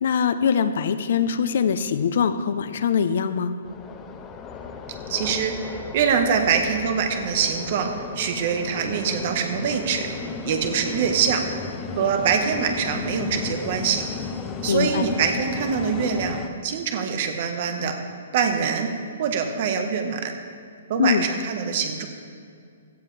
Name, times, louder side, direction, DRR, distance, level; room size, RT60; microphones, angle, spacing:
voice 1, 0.0-3.5 14.7-15.1 21.0-21.2, left 7 dB, 55° left, 11 dB, 0.7 m, -22 dB
sound 1, 3.6-16.5, left 5 dB, 15° left, 0.6 m, -34 dB
voice 2, 5.1-10.1 10.4-11.4 12.0-14.0 14.6-17.9 18.3-18.9 19.2-20.3 20.9-22.1, right 6 dB, 35° right, 5 dB, 1.3 m, -24 dB
16.5 x 13.5 x 3.4 m, 2.3 s
hypercardioid pair, 170°, 0 cm